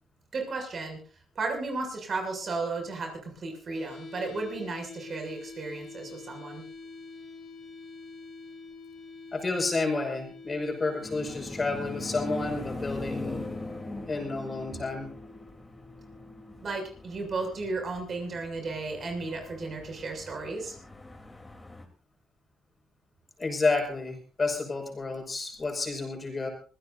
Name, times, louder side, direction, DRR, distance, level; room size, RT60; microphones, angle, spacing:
voice 1, 0.3-1.0 1.4-6.6 16.6-20.7, right 3 dB, 45° right, 4 dB, 6.9 m, -34 dB
sound 1, 3.7-17.7, left 3 dB, 60° left, 5.1 m, -47 dB
voice 2, 9.3-13.5 14.1-15.1 23.4-26.5, left 3 dB, 30° left, 4 dB, 5.9 m, -30 dB
sound 2, 11.0-21.8, left 2 dB, 15° left, 3.5 m, -41 dB
25.5 x 16.0 x 2.7 m, 0.38 s
cardioid pair, 90°, 0 cm